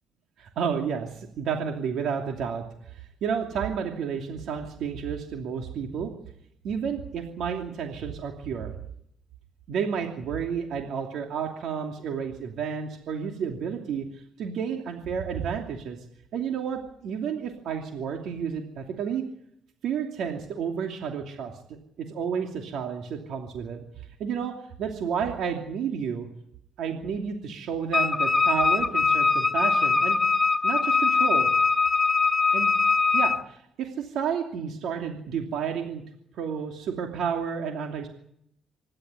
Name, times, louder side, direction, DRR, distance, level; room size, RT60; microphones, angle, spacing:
voice 1, 0.4-2.6 2.9-6.1 6.6-8.7 9.7-16.0 16.3-19.2 19.8-23.8 24.2-24.5 24.8-26.3 26.8-30.2 30.6-31.5 32.5-32.7 33.1-36.0 36.3-38.1, right 7 dB, 75° right, 2 dB, 2.8 m, -31 dB
Wind instrument woodwind instrument, 27.9-33.4, left 4 dB, 15° left, 1.2 m, -22 dB
26.0 x 12.0 x 9.7 m, 0.74 s
cardioid pair, 90°, 0 cm